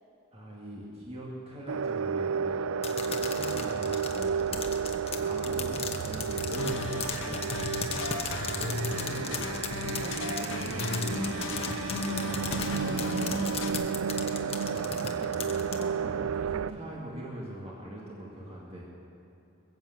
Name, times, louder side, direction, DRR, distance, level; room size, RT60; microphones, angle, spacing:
voice 1, 0.3-2.6 2.9-4.7 5.1-7.5 8.5-11.6 12.2-12.5 14.7-18.8, right 1 dB, 30° right, -4 dB, 2.0 m, -42 dB
sound 1, 1.7-16.7, right 6 dB, 80° right, 0.4 m, -32 dB
sound 2, 2.8-15.8, left 6 dB, 30° left, 1.1 m, -36 dB
sound 3, 6.6-13.7, left 3 dB, 65° left, 1.0 m, -35 dB
voice 2, 8.9-9.0, right 1 dB, 65° right, -2 dB, 3.2 m, -54 dB
21.0 x 8.0 x 7.8 m, 3.0 s
head